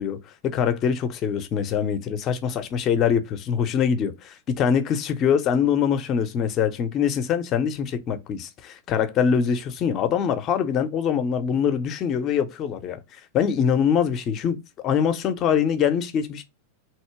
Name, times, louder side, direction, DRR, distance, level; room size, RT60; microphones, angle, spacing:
voice 1, 0.0-13.0 13.3-16.4, left 7 dB, 35° left, 0.6 m, -23 dB
3.0 x 2.8 x 4.5 m
figure-of-eight pair, 90°, 0 cm